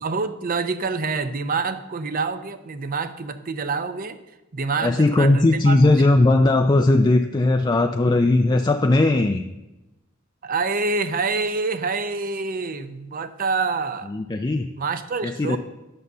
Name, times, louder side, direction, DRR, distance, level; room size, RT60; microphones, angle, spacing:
voice 1, 0.0-4.2 4.5-5.8 10.4-14.1 14.8-15.6, right 4 dB, 45° right, 11 dB, 0.6 m, -26 dB
voice 2, 4.8-9.4 14.1-14.7 15.2-15.6, left 2 dB, 20° left, 5 dB, 0.4 m, -18 dB
8.9 x 6.7 x 6.7 m, 1.0 s
head